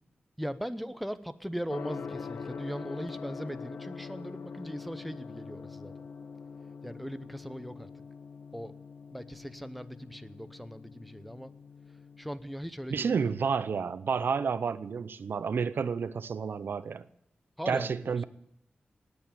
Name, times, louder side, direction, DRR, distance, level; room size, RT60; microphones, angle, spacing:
voice 1, 0.4-5.9 6.8-7.9 8.5-8.7 9.1-11.5 12.2-13.3 17.6-18.2, equal, ahead, 0.8 m, -39 dB
Gong, 1.7-12.5, left 5 dB, 85° left, 0.7 m, -44 dB
voice 2, 12.9-17.0 17.7-18.2, right 6 dB, 75° right, 0.6 m, -30 dB
19.0 x 8.3 x 8.7 m
wide cardioid pair, 95°, 4 cm